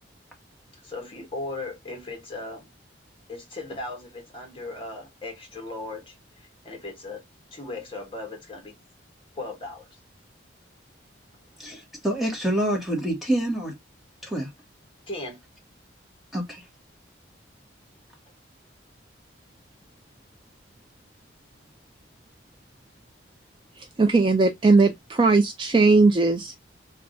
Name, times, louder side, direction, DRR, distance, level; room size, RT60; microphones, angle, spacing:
voice 1, 0.8-2.7 3.3-7.2 7.5-8.8 9.4-9.9 15.1-15.4, left 2 dB, 25° left, 1.1 m, -37 dB
voice 2, 11.6-13.7 14.2-14.5 16.3-16.6, right 1 dB, ahead, 1.1 m, -27 dB
voice 3, 23.7-26.5, right 3 dB, 25° right, 0.4 m, -19 dB
3.4 x 2.3 x 3.7 m
head